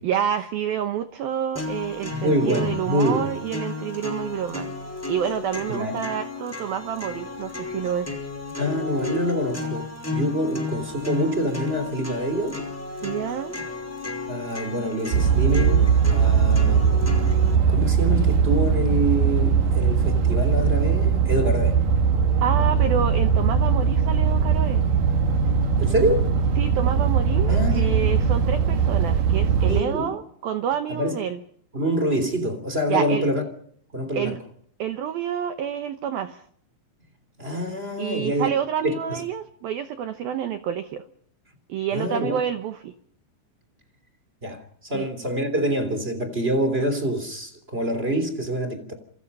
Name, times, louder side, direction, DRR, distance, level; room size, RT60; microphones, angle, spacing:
voice 1, 0.0-4.7 5.1-8.2 13.0-13.5 22.4-24.8 26.6-31.4 32.9-33.2 34.1-34.4 34.8-36.4 38.0-41.0 41.7-42.9 44.9-45.1, right 9 dB, 80° right, 2.1 m, -28 dB
sound 1, 1.6-17.6, left 4 dB, 5° left, 4.5 m, -33 dB
voice 2, 2.1-3.3 5.7-6.0 8.6-12.6 14.3-17.0 17.7-21.8 25.8-26.3 27.5-28.2 29.7-30.2 30.9-31.1 31.7-33.4 33.9-34.4 37.4-38.5 38.8-39.2 41.9-42.4 44.4-48.9, equal, 15° right, 2.2 m, -26 dB
sound 2, 15.1-29.8, right 6 dB, 60° right, 2.4 m, -20 dB
27.5 x 27.0 x 5.5 m
omnidirectional pair, 5.9 m